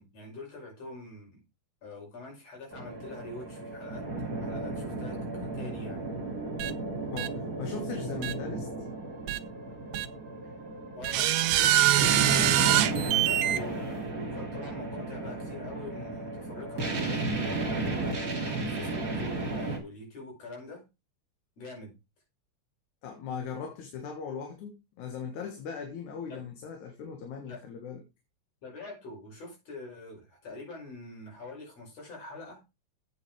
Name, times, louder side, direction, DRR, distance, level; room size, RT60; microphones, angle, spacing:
voice 1, 0.0-1.4 1.8-6.1 10.4-10.6 11.0-17.5 18.3-20.8 21.6-21.9 26.3-26.4 27.5-27.6 28.6-32.6, left 2 dB, 60° left, 6.6 m, -45 dB
sound 1, 2.7-19.8, right 2 dB, 30° right, 2.8 m, -34 dB
sound 2, 6.6-6.7 7.2-7.3 8.2-8.3 9.3-9.4 9.9-10.1 11.0-13.6, right 13 dB, 75° right, 1.6 m, -24 dB
voice 2, 7.1-8.7 18.5-18.7 23.0-28.0, left 6 dB, 80° left, 2.9 m, -39 dB
8.5 x 8.3 x 4.8 m
omnidirectional pair, 3.4 m